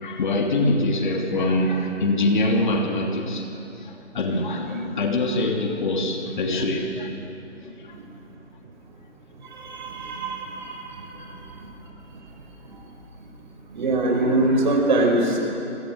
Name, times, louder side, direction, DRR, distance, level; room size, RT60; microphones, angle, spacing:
voice 1, 0.0-7.2 7.6-8.0 11.1-11.3, left 2 dB, 40° left, 2 dB, 3.0 m, -24 dB
voice 2, 9.6-10.8 13.7-15.4, right 2 dB, 40° right, 2 dB, 5.7 m, -22 dB
29.0 x 23.5 x 8.1 m, 2.9 s
hypercardioid pair, 165°, 36 cm